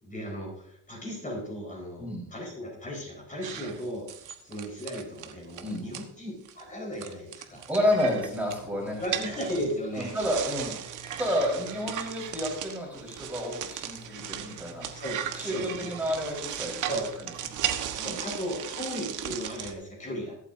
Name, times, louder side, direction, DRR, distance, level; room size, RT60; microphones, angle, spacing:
voice 1, 0.0-7.6 9.0-10.2 14.9-15.9 16.8-17.1 17.9-20.3, equal, 25° left, -3 dB, 4.7 m, -36 dB
sound 1, 3.4-6.0 6.5-6.6 6.9-19.7, right 10 dB, 70° right, 1.4 m, -36 dB
voice 2, 7.7-9.0 10.0-10.8 11.2-14.9 15.3-16.9 17.9-18.2, equal, 5° right, -3 dB, 4.5 m, -30 dB
23.0 x 8.5 x 2.7 m, 0.71 s
cardioid pair, 120°, 32 cm